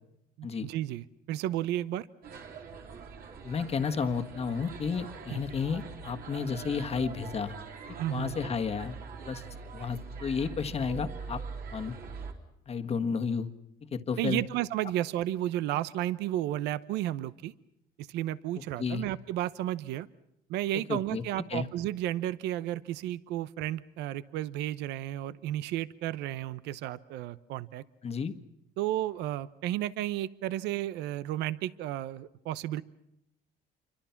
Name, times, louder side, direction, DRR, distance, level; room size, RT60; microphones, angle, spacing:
voice 1, 0.4-2.1 5.3-5.4 8.0-8.4 14.2-17.5 18.0-20.1 20.5-27.8 28.8-32.8, right 13 dB, 90° right, 17 dB, 0.8 m, -33 dB
sound 1, 2.2-12.3, right 5 dB, 65° right, 3.8 m, -43 dB
voice 2, 3.4-7.5 8.1-9.0 9.3-9.4 9.7-11.4 11.7-11.9 12.7-13.5 13.9-14.4 18.8-19.0 20.9-21.2 21.5-21.7 28.0-28.3, left 6 dB, 35° left, 8 dB, 1.5 m, -32 dB
27.5 x 25.0 x 5.9 m, 0.80 s
cardioid pair, 110°, 17 cm